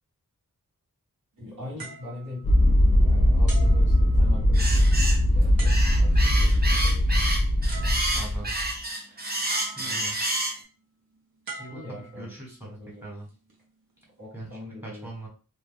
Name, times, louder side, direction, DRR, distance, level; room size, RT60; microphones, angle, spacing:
voice 1, 1.4-2.5 2.8-4.9 5.2-7.2 9.8-10.1 11.7-13.0 14.2-15.1, left 1 dB, 65° right, -7 dB, 1.4 m, -42 dB
sound 1, 1.8-3.0 3.5-4.6 5.6-6.3 7.3-7.4 7.7-8.5 9.5-10.3 11.5-12.6 13.3-13.5, right 3 dB, 80° right, 0.9 m, -43 dB
sound 2, 2.4-8.7, left 1 dB, 20° left, 0.5 m, -20 dB
Food Fight, 4.5-5.2 5.7-10.6, right 1 dB, 25° right, 0.7 m, -29 dB
voice 2, 7.7-8.5 9.1-9.3 9.8-10.2 11.6-13.3 14.3-15.3, right 2 dB, 5° right, -3 dB, 1.2 m, -41 dB
2.2 x 2.2 x 3.4 m, 0.36 s
wide cardioid pair, 85°, 35 cm